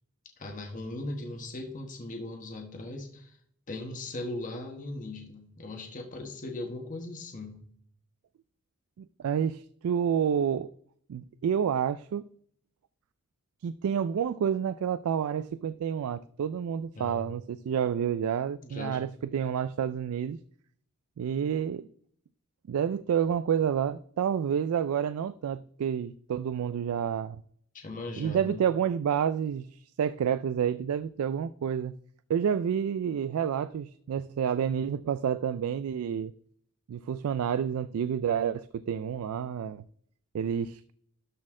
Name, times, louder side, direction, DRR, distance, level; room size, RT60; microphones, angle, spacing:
voice 1, 0.4-3.4 3.7-7.7 17.0-17.3 18.6-19.2 27.7-28.6, left 2 dB, 35° left, 1.2 m, -39 dB
voice 2, 9.0-10.7 11.1-12.2 13.6-20.4 21.2-21.9 22.7-27.4 28.2-32.0 32.3-36.3 36.9-39.8 40.3-40.8, right 8 dB, 75° right, 0.3 m, -29 dB
12.5 x 4.1 x 3.7 m
head